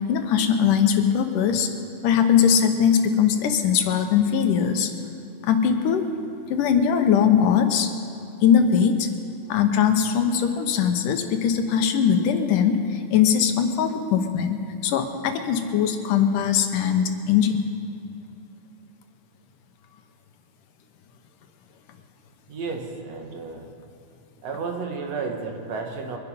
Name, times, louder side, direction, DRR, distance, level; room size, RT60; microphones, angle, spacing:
voice 1, 0.1-1.7 2.0-4.9 5.4-6.0 6.5-7.9 8.4-9.1 9.5-14.6 14.8-17.6, left 8 dB, 85° left, 6 dB, 2.6 m, -20 dB
voice 2, 22.5-23.8 24.4-26.2, right 4 dB, 60° right, 3 dB, 2.2 m, -32 dB
24.0 x 10.5 x 5.4 m, 2.6 s
omnidirectional pair, 3.6 m